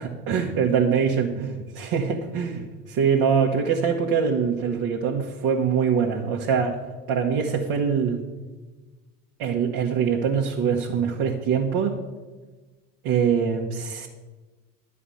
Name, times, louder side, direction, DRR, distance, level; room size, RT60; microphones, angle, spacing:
voice 1, 0.0-6.8 7.1-8.2 9.4-12.0 13.0-14.1, right 6 dB, 50° right, -1 dB, 1.5 m, -23 dB
11.5 x 5.0 x 8.6 m, 1.3 s
hypercardioid pair, 75°, 48 cm